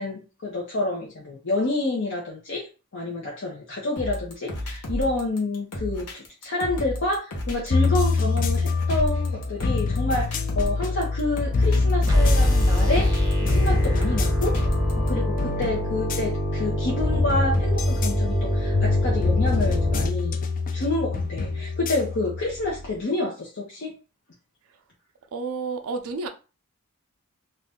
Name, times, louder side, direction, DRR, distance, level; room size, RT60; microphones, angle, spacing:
voice 1, 0.0-2.7 2.9-13.1 13.4-14.6 15.1-20.4 20.7-23.9, left 2 dB, 55° left, 0.8 m, -28 dB
sound 1, 4.0-15.1, left 1 dB, 85° left, 1.0 m, -33 dB
sound 2, 7.7-23.0, left 3 dB, 40° left, 0.4 m, -25 dB
sound 3, 12.1-20.1, left 1 dB, 15° right, 0.9 m, -24 dB
voice 2, 25.3-26.3, right 4 dB, 65° right, 0.5 m, -30 dB
2.6 x 2.3 x 3.5 m
head